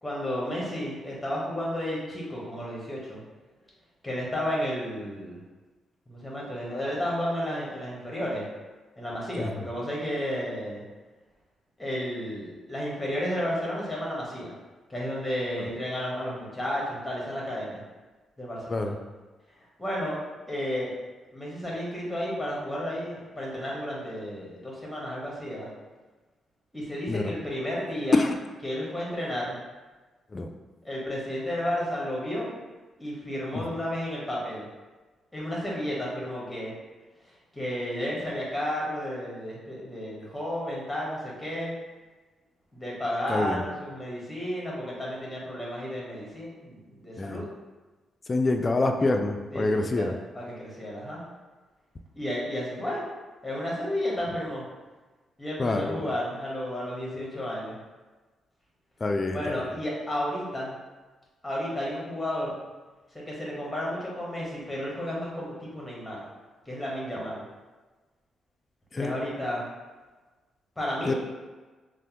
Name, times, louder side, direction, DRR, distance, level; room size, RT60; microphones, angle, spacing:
voice 1, 0.0-3.2 4.0-5.4 6.1-8.4 9.0-10.8 11.8-14.5 14.9-17.8 18.4-18.9 19.8-20.2 20.5-20.9 21.3-25.7 26.7-28.2 28.6-29.6 30.8-32.5 33.0-34.7 35.3-36.7 37.5-41.7 42.7-47.4 49.5-51.2 52.1-53.0 53.4-54.6 55.4-57.8 59.3-60.7 61.4-62.6 63.1-66.2 66.7-67.4 68.9-69.6 70.8-71.1, equal, 10° left, -5 dB, 1.2 m, -32 dB
voice 2, 43.3-43.6 47.2-47.4 48.3-50.1 55.6-56.0 59.0-59.6 68.9-69.2 71.1-71.2, left 2 dB, 35° left, 5 dB, 0.3 m, -26 dB
3.2 x 2.1 x 2.9 m, 1.2 s
supercardioid pair, 65°, 0 cm